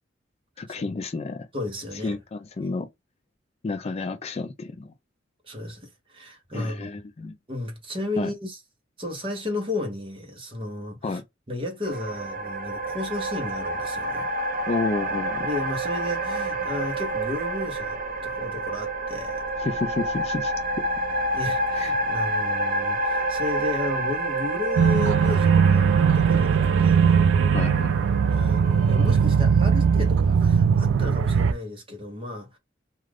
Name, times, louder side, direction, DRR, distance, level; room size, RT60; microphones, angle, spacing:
voice 1, 0.6-1.5 2.0-2.9 3.6-4.9 6.5-7.3 8.2-8.3 11.0-11.2 14.7-15.5 19.6-20.5 21.8-21.9 27.5-27.9, left 3 dB, 35° left, 0.3 m, -30 dB
voice 2, 1.5-2.2 5.4-6.9 7.5-8.6 9.0-11.2 11.5-14.3 15.4-19.4 21.3-27.2 28.2-32.6, left 2 dB, 30° right, 0.9 m, -33 dB
sound 1, 11.8-30.1, right 2 dB, 50° right, 0.6 m, -29 dB
sound 2, 24.8-31.5, right 6 dB, 85° right, 0.3 m, -19 dB
2.4 x 2.4 x 3.2 m
head